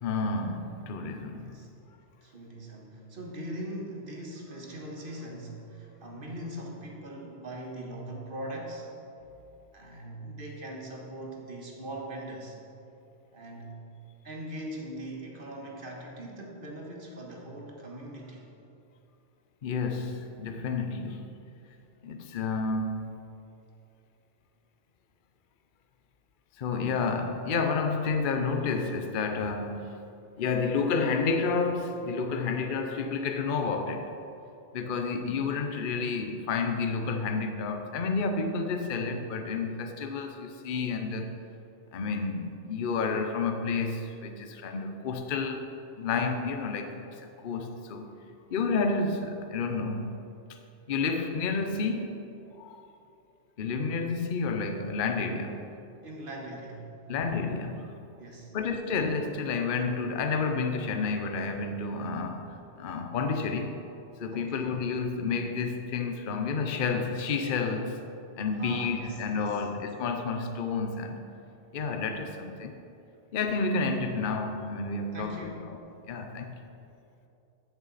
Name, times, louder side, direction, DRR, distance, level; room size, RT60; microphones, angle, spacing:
voice 1, 0.0-1.6 19.6-21.3 22.0-23.2 26.6-30.0 30.4-34.1 34.7-41.4 41.9-45.6 46.0-48.1 48.5-50.3 50.9-52.1 52.6-52.8 53.6-55.7 57.1-57.9 58.5-63.8 64.2-68.0 68.4-71.3 71.7-72.8 73.3-75.8 76.1-76.5, left 4 dB, 55° left, 6 dB, 0.8 m, -30 dB
voice 2, 1.3-1.7 2.2-9.0 9.7-12.6 13.3-13.8 14.2-18.5 56.0-56.9 58.2-58.6 64.3-64.7 68.5-69.6 75.1-75.9, right 1 dB, 55° right, 0 dB, 1.6 m, -41 dB
14.5 x 6.9 x 4.1 m, 2.8 s
omnidirectional pair, 1.1 m